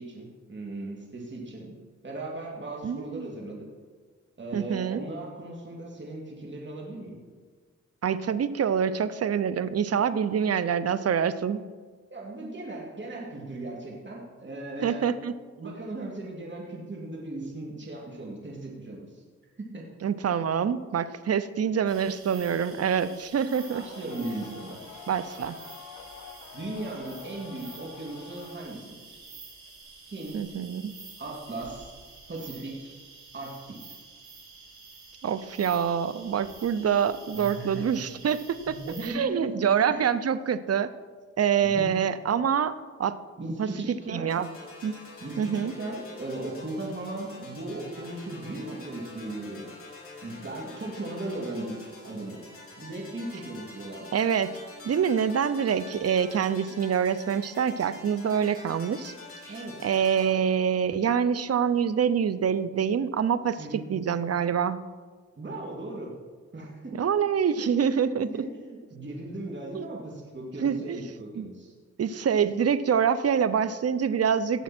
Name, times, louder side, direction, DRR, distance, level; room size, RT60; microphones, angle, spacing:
voice 1, 0.0-1.7 2.0-3.7 4.4-7.2 12.1-15.1 15.6-19.2 19.6-19.9 23.7-24.8 26.5-29.3 30.1-30.6 31.2-31.9 32.3-32.9 33.3-33.9 37.3-38.0 38.7-39.6 39.9-40.1 41.6-41.9 43.4-44.3 45.2-49.7 50.2-52.4 52.8-54.2 59.5-59.8 63.6-63.8 65.4-66.1 66.5-67.2 67.6-67.7 67.9-71.7 74.5-74.6, right 2 dB, 40° right, -2 dB, 2.8 m, -37 dB
voice 2, 2.8-3.3 4.5-5.0 8.0-11.6 14.8-15.4 15.6-15.7 20.0-23.8 24.2-24.3 25.1-25.6 30.3-30.9 35.2-38.8 39.0-40.9 41.4-43.2 43.6-44.5 44.8-44.9 45.4-45.7 54.1-54.5 54.8-59.1 59.4-59.5 59.8-64.8 66.9-68.3 69.7-69.8 70.6-71.0 71.4-71.5 72.0-74.6, right 7 dB, 55° right, 14 dB, 0.7 m, -26 dB
sound 1, 21.9-39.1, right 4 dB, 90° right, 3.9 m, -49 dB
sound 2, 23.5-28.6, left 8 dB, 80° left, 0.9 m, -47 dB
sound 3, 44.3-60.3, left 2 dB, 50° left, 4.1 m, -46 dB
17.0 x 7.0 x 4.4 m, 1.5 s
cardioid pair, 60°, 29 cm